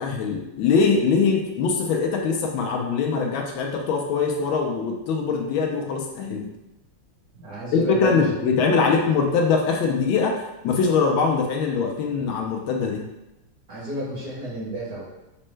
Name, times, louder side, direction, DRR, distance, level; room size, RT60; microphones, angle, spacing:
voice 1, 0.0-6.5 7.7-10.4 10.6-13.0, left 5 dB, 75° left, 1 dB, 1.3 m, -22 dB
voice 2, 7.3-8.8 13.7-15.0, right 1 dB, 55° right, -6 dB, 1.3 m, -31 dB
5.1 x 2.1 x 3.2 m, 0.94 s
omnidirectional pair, 2.3 m